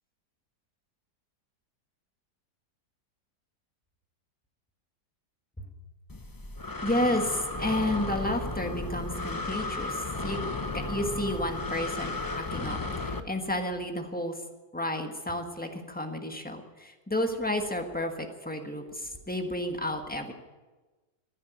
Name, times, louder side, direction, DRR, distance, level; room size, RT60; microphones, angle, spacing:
Breathing, 6.1-13.2, left 2 dB, 30° left, 0.4 m, -34 dB
voice 1, 6.8-10.4 10.9-14.3 14.7-20.3, left 1 dB, 5° left, 4 dB, 1.2 m, -31 dB
15.0 x 10.0 x 9.2 m, 1.2 s
omnidirectional pair, 1.8 m